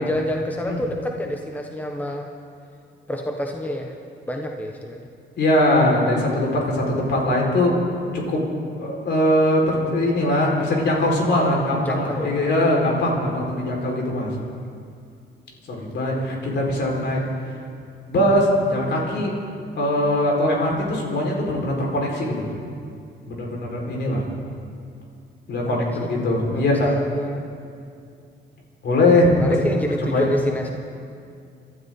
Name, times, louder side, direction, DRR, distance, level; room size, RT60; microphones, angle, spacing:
voice 1, 0.0-2.3 3.1-3.9 4.3-5.1 11.9-12.3 16.3-16.7 25.6-26.1 26.5-27.4 29.4-30.7, left 1 dB, 10° left, 2 dB, 1.2 m, -28 dB
voice 2, 5.4-7.8 8.1-8.5 8.8-14.3 15.7-17.6 18.1-19.3 19.8-22.5 23.2-24.2 25.5-26.9 28.8-29.5 30.0-30.3, left 1 dB, 60° left, -2 dB, 4.4 m, -21 dB
28.5 x 12.5 x 3.8 m, 2.3 s
cardioid pair, 90°, 20 cm